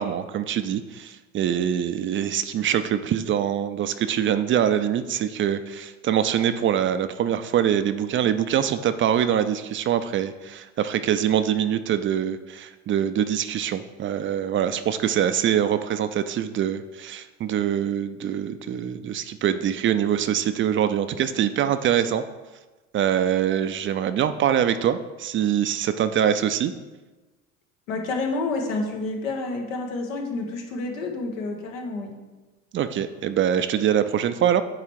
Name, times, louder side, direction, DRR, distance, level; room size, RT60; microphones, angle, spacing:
voice 1, 0.0-22.2 22.9-26.7 32.7-34.6, right 9 dB, 35° right, 11 dB, 0.4 m, -24 dB
voice 2, 27.9-32.1, left 3 dB, 90° left, 2 dB, 1.2 m, -29 dB
8.6 x 3.2 x 4.7 m, 1.2 s
hypercardioid pair, 85°, 39 cm